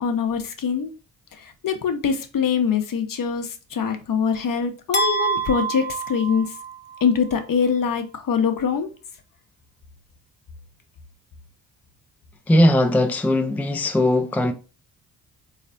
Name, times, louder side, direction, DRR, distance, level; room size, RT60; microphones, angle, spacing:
voice 1, 0.0-0.9 1.6-6.5 7.0-8.9, left 6 dB, 50° left, 0.9 m, -23 dB
sound 1, 4.9-7.1, right 4 dB, 25° left, 1.0 m, -26 dB
voice 2, 12.5-14.5, left 1 dB, 5° left, 0.5 m, -19 dB
3.9 x 3.3 x 2.6 m
hypercardioid pair, 45°, 44 cm